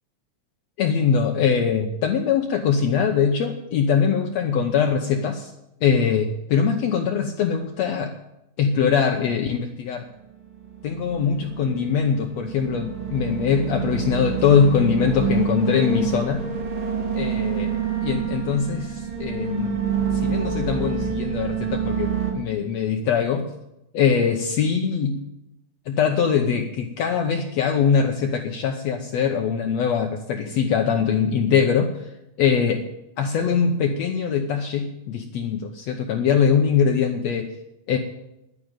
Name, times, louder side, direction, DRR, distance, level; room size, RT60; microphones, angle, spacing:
voice 1, 0.8-5.5 5.8-8.2 8.6-10.0 10.8-16.4 17.1-19.7 20.1-23.5 23.9-25.2 25.9-32.1 32.4-32.9 33.2-37.5 37.9-38.0, left 6 dB, 80° left, 3 dB, 1.5 m, -22 dB
sound 1, 10.4-22.3, right 6 dB, 75° right, 4.2 m, -27 dB
10.5 x 10.0 x 9.0 m, 0.88 s
omnidirectional pair, 4.2 m